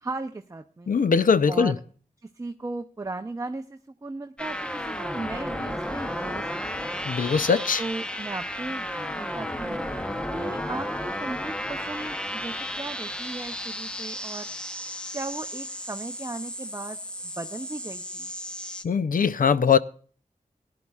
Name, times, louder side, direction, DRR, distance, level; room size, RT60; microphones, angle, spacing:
voice 1, 0.0-0.9 1.5-1.7 2.2-7.1 7.8-9.8 10.3-14.5 15.1-18.3, right 2 dB, 25° right, 0.6 m, -37 dB
voice 2, 0.9-1.7 7.0-7.8 18.8-19.8, left 6 dB, 70° left, 0.5 m, -21 dB
sound 1, 4.4-18.8, equal, 5° left, 0.8 m, -33 dB
18.0 x 11.0 x 2.4 m
wide cardioid pair, 75°, 15 cm